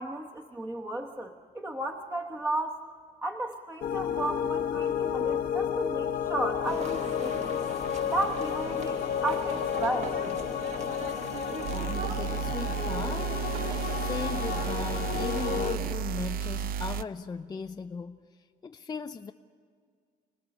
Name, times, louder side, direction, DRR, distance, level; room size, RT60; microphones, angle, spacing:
voice 1, 0.0-2.8 3.2-7.6 8.1-10.1, right 2 dB, 15° right, 1 dB, 1.2 m, -34 dB
sound 1, 3.8-15.8, left 9 dB, 60° left, 1.1 m, -31 dB
sound 2, 6.6-15.9, right 5 dB, 40° right, 1.6 m, -40 dB
sound 3, 11.6-17.0, right 7 dB, 60° right, 0.7 m, -33 dB
voice 2, 11.7-13.5 13.9-18.2 18.6-19.3, left 5 dB, 20° left, 6 dB, 0.5 m, -38 dB
29.5 x 18.5 x 6.7 m, 2.1 s
cardioid pair, 110°, 17 cm